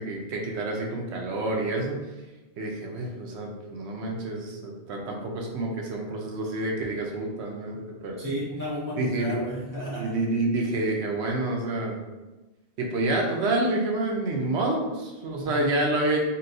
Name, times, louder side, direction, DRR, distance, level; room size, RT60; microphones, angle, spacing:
voice 1, 0.0-2.0 2.6-8.2 9.0-9.3 9.9-12.0 12.8-16.2, right 2 dB, 80° right, 0 dB, 0.9 m, -28 dB
voice 2, 8.2-10.1 15.5-15.7, equal, 30° left, -6 dB, 0.4 m, -32 dB
4.1 x 2.2 x 2.6 m, 1.1 s
omnidirectional pair, 1.1 m